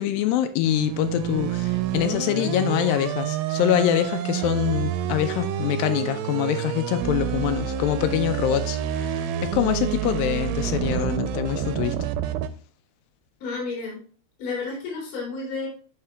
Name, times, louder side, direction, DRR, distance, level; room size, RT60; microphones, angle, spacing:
voice 1, 0.0-12.0, left 12 dB, 85° left, 2.1 m, -25 dB
sound 1, 0.6-12.5, right 9 dB, 80° right, 2.3 m, -28 dB
voice 2, 13.4-14.0 14.4-15.7, left 4 dB, 60° left, 3.7 m, -31 dB
12.5 x 4.5 x 2.2 m
omnidirectional pair, 4.5 m